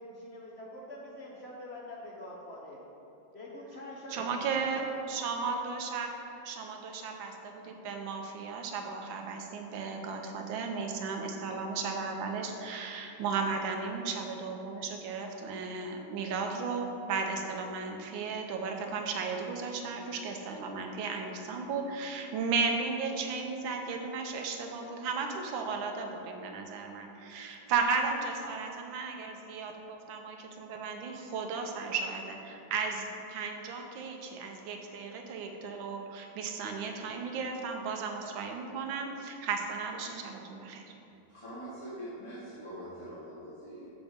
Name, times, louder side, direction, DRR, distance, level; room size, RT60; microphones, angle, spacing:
voice 1, 0.0-2.8 3.3-5.7, left 1 dB, 60° left, -4 dB, 0.7 m, -45 dB
voice 2, 4.1-6.1 6.4-40.8, right 4 dB, 85° right, 3 dB, 1.5 m, -35 dB
voice 3, 41.3-43.9, right 1 dB, 20° left, -12 dB, 1.4 m, -43 dB
7.0 x 7.0 x 3.6 m, 2.9 s
omnidirectional pair, 2.1 m